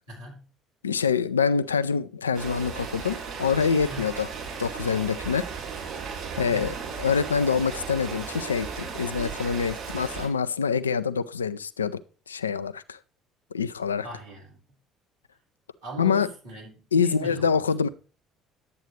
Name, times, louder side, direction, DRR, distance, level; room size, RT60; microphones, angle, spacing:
voice 1, 0.1-0.5 3.9-4.0 6.3-6.7 14.0-14.6 15.8-17.5, right 2 dB, 80° right, 4.4 m, -40 dB
voice 2, 0.8-4.3 4.6-5.5 6.4-12.0 12.3-13.0 13.5-14.0 16.0-16.3 16.9-17.9, left 6 dB, 80° left, 0.3 m, -25 dB
Rain, 2.3-10.3, right 6 dB, 50° right, 5.3 m, -36 dB
10.5 x 8.1 x 3.2 m
figure-of-eight pair, 55°, 0 cm